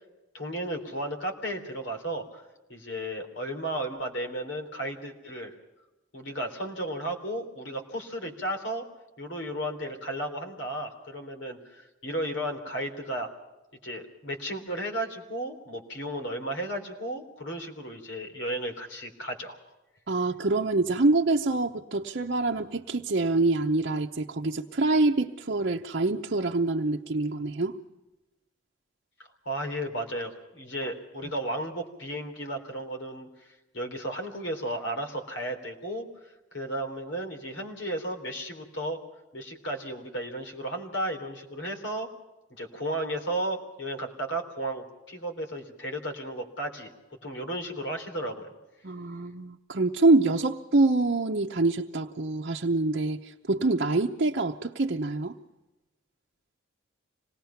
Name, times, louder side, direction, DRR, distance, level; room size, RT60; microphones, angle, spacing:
voice 1, 0.3-2.4 2.7-5.5 6.1-8.9 9.2-13.3 13.8-19.6 29.5-33.3 33.7-36.1 36.5-39.0 39.3-42.1 42.6-46.9 47.2-48.5, right 1 dB, 65° left, 4 dB, 3.6 m, -34 dB
voice 2, 20.1-27.7 48.8-55.3, right 2 dB, 55° right, 1 dB, 0.8 m, -25 dB
26.0 x 19.0 x 5.8 m, 1.0 s
head